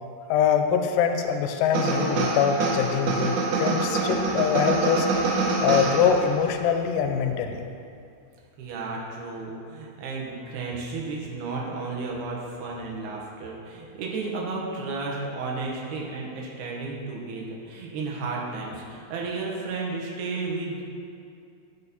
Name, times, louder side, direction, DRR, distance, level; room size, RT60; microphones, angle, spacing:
voice 1, 0.3-5.1 5.6-7.6, left 7 dB, 85° left, 6 dB, 2.0 m, -23 dB
sound 1, 1.7-6.5, right 3 dB, 65° right, 2.0 m, -26 dB
voice 2, 8.6-20.8, right 3 dB, 85° right, -3 dB, 3.2 m, -33 dB
14.0 x 5.3 x 4.2 m, 2.4 s
omnidirectional pair, 4.3 m